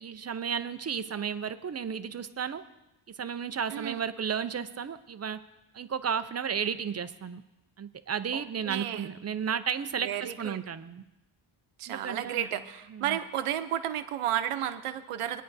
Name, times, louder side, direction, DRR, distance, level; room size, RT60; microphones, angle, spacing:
voice 1, 0.0-2.6 3.2-5.4 5.7-7.4 7.8-11.0 11.9-12.5 12.9-13.2, right 7 dB, 35° right, 11 dB, 0.4 m, -33 dB
voice 2, 3.7-4.0 8.3-9.1 10.0-10.7 11.8-15.4, right 11 dB, 90° right, 10 dB, 0.8 m, -33 dB
20.0 x 10.0 x 2.7 m, 0.97 s
wide cardioid pair, 135°, 50 cm